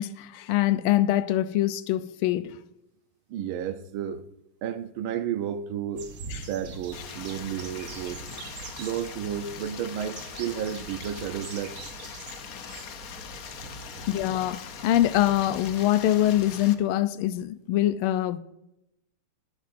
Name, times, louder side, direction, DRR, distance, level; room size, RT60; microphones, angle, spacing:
voice 1, 0.0-2.6 14.1-18.4, left 13 dB, 90° left, 1.5 m, -24 dB
voice 2, 3.3-4.2 4.6-6.1 6.5-8.3 8.8-11.8 13.9-14.1, right 9 dB, 80° right, 1.5 m, -32 dB
sound 1, 5.9-16.6, right 4 dB, 50° right, 1.1 m, -44 dB
Stream, 6.9-16.7, left 8 dB, 65° left, 0.9 m, -42 dB
11.5 x 11.5 x 2.6 m
omnidirectional pair, 2.3 m